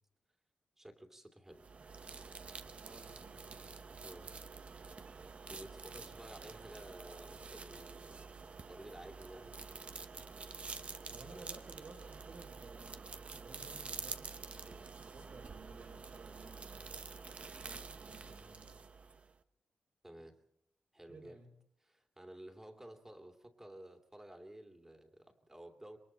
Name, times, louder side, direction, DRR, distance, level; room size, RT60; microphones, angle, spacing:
voice 1, 0.8-1.6 4.0-4.4 5.5-8.4 8.6-9.6 11.3-11.5 14.6-14.9 20.0-20.4 20.9-21.4 21.8-26.0, right 1 dB, 15° right, 5 dB, 2.5 m, -53 dB
sound 1, 1.5-19.3, right 4 dB, 45° right, 1.0 m, -48 dB
voice 2, 2.8-3.7 11.1-17.0 17.6-18.8 21.1-21.5, right 3 dB, 60° right, 2 dB, 5.3 m, -56 dB
27.5 x 22.5 x 4.4 m, 0.67 s
wide cardioid pair, 100°, 3 cm